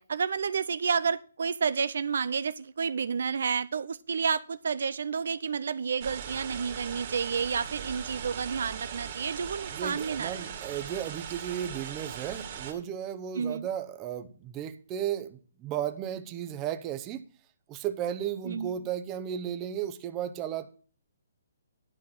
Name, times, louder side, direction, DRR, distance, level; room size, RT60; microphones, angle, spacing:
voice 1, 0.0-10.5 13.4-13.7 18.5-18.7, right 6 dB, 65° right, 0.4 m, -30 dB
sound 1, 6.0-12.7, right 8 dB, 40° right, 2.1 m, -39 dB
voice 2, 9.7-17.2 17.7-20.7, right 10 dB, 20° right, 0.8 m, -34 dB
11.0 x 4.6 x 7.6 m
hypercardioid pair, 155°, 0 cm